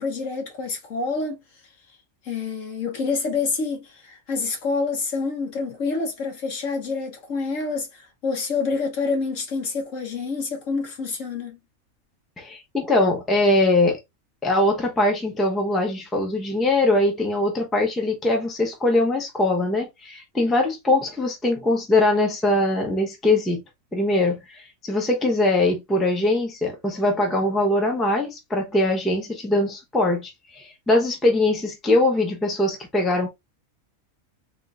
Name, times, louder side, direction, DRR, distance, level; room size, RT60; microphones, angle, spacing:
voice 1, 0.0-1.4 2.2-11.6, left 4 dB, 65° left, 1.5 m, -27 dB
voice 2, 12.4-14.0 14.4-23.6 23.9-33.3, left 2 dB, ahead, 0.8 m, -22 dB
3.8 x 3.6 x 2.5 m
omnidirectional pair, 1.5 m